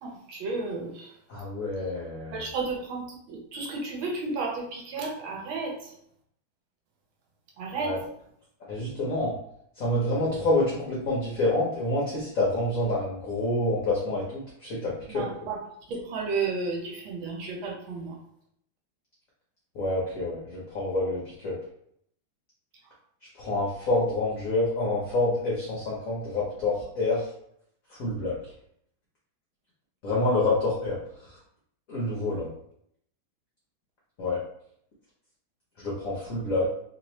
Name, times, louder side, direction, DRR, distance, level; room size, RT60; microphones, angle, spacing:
voice 1, 0.0-1.1 2.3-5.9 7.6-7.9 15.1-15.6 15.9-18.2, right 4 dB, 80° right, -1 dB, 1.6 m, -32 dB
voice 2, 1.3-2.5 7.7-8.0 8.7-9.4 9.7-15.2 19.7-21.6 23.3-27.3 27.9-28.5 30.0-31.4 31.9-32.5 34.2-34.4 35.8-36.7, left 2 dB, 55° left, -5 dB, 1.0 m, -27 dB
3.5 x 2.9 x 3.0 m, 0.71 s
omnidirectional pair, 2.2 m